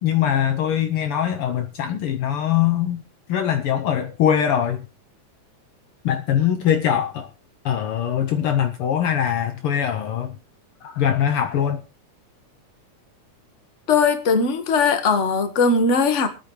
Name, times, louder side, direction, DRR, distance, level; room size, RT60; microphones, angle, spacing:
voice 1, 0.0-3.0 3.3-4.8 6.0-7.3 7.6-10.3 10.8-11.8, left 9 dB, 90° left, 1.2 m, -22 dB
voice 2, 13.9-16.3, left 4 dB, 40° left, 1.0 m, -19 dB
24.5 x 9.1 x 3.1 m
omnidirectional pair, 3.6 m